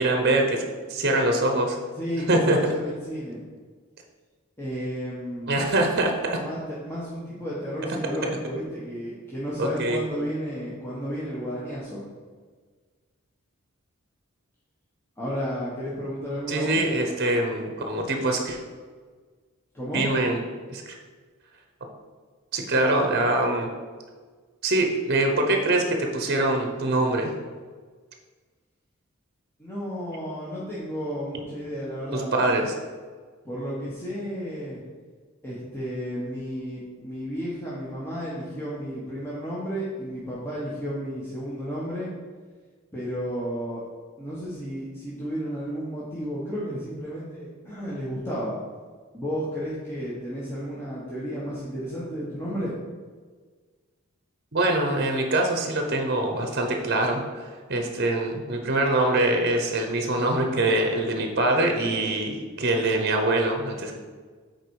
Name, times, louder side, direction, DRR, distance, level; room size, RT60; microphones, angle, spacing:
voice 1, 0.0-1.8 2.3-2.6 5.5-6.4 9.6-10.1 16.5-18.6 19.9-20.4 20.7-20.9 22.5-23.7 24.6-27.3 32.1-32.7 54.5-63.9, right 2 dB, 50° right, 3 dB, 0.9 m, -24 dB
voice 2, 1.9-3.4 4.6-5.7 6.4-12.0 15.2-16.8 19.7-20.1 29.6-32.5 33.4-34.8 35.4-42.1 42.9-43.8 44.2-48.6 49.1-52.7, equal, 10° left, -8 dB, 1.3 m, -32 dB
8.0 x 4.6 x 4.7 m, 1.5 s
head